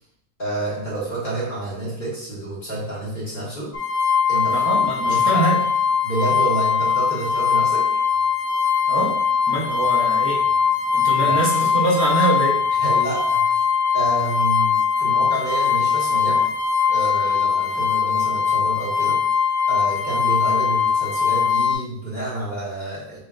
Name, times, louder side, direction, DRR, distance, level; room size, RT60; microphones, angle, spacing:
voice 1, 0.4-3.7 4.3-4.6 5.1-5.5 6.0-7.9 11.1-11.4 12.8-13.6 13.9-16.4 16.9-19.2 19.7-23.2, right 2 dB, 30° left, -7 dB, 1.6 m, -29 dB
sound 1, 3.7-21.7, left 6 dB, 80° left, 1.5 m, -20 dB
voice 2, 4.5-5.6 8.9-9.2 9.5-10.5 10.9-12.6, right 2 dB, 60° right, -3 dB, 1.2 m, -24 dB
6.3 x 3.1 x 2.4 m, 0.70 s
omnidirectional pair, 1.9 m